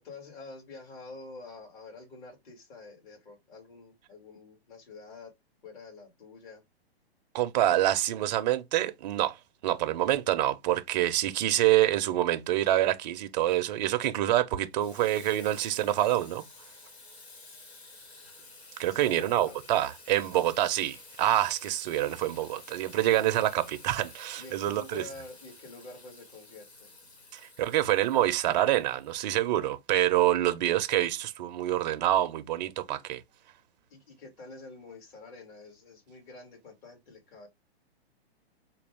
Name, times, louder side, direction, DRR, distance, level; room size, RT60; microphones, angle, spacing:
voice 1, 0.0-5.3 5.6-6.6 7.8-7.9 18.8-19.6 24.3-26.9 33.9-37.5, left 3 dB, 50° left, 2.3 m, -47 dB
voice 2, 7.3-9.4 9.6-16.4 18.8-25.0 27.3-33.2, right 13 dB, 45° right, 0.4 m, -26 dB
Water tap faucet / Sink (filling or washing), 14.8-29.6, left 3 dB, 90° left, 1.5 m, -52 dB
3.8 x 2.3 x 3.4 m
hypercardioid pair, 140°, 32 cm